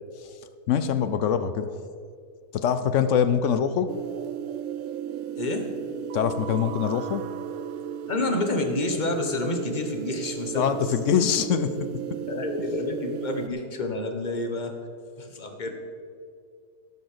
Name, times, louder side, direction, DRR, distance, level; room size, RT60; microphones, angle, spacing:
voice 1, 0.7-1.7 2.5-3.9 6.1-7.3 10.5-11.9, left 8 dB, 65° left, 11 dB, 0.8 m, -24 dB
sound 1, 3.9-13.5, right 9 dB, 75° right, 0.7 m, -35 dB
voice 2, 5.4-5.7 8.1-10.7 12.3-14.7 15.2-15.7, left 2 dB, 30° left, 4 dB, 1.3 m, -29 dB
16.0 x 6.3 x 6.7 m, 2.2 s
omnidirectional pair, 1.8 m